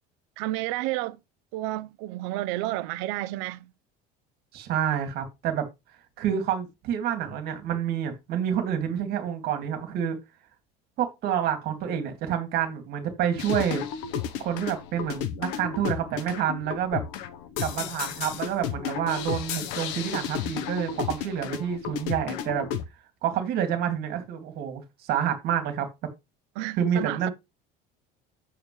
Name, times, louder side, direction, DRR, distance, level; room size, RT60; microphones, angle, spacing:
voice 1, 0.4-1.2 1.5-3.7 26.6-27.3, right 17 dB, 75° right, 0.8 m, -31 dB
voice 2, 4.5-5.7 6.2-10.2 11.0-13.8 14.4-17.0 17.6-22.7 23.2-25.9 26.8-27.3, right 9 dB, 55° right, 2.3 m, -28 dB
sound 1, 13.4-22.9, left 9 dB, 80° left, 1.0 m, -33 dB
8.7 x 6.8 x 3.2 m
cardioid pair, 160°, 19 cm